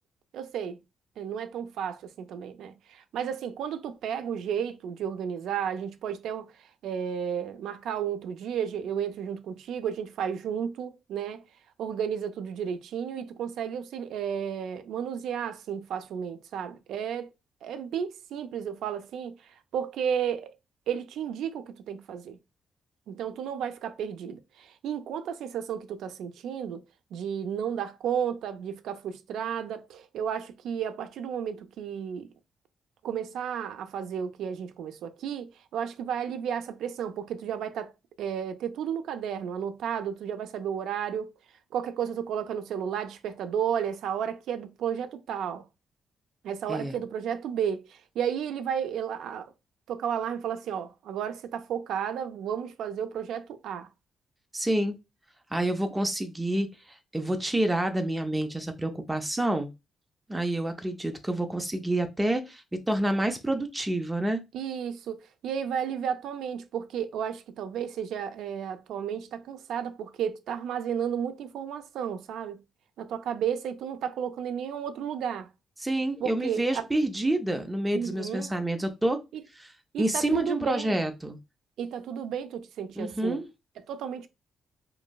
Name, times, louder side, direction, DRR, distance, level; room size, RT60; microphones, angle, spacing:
voice 1, 0.3-0.8 1.2-11.4 11.8-17.3 17.6-20.5 20.9-22.4 23.1-26.8 27.1-32.3 33.0-37.9 38.2-41.3 41.7-45.7 46.4-49.5 49.9-53.9 64.5-72.6 73.0-75.5 76.2-76.8 77.9-78.5 79.3-79.4 79.9-81.0 81.8-83.4 83.9-84.3, right 8 dB, 85° right, 0.3 m, -33 dB
voice 2, 54.5-54.9 55.5-56.7 57.1-59.7 60.3-64.4 75.8-79.2 80.0-81.4 83.0-83.5, right 1 dB, 10° right, 0.4 m, -28 dB
3.0 x 2.6 x 2.2 m
cardioid pair, 165°, 0 cm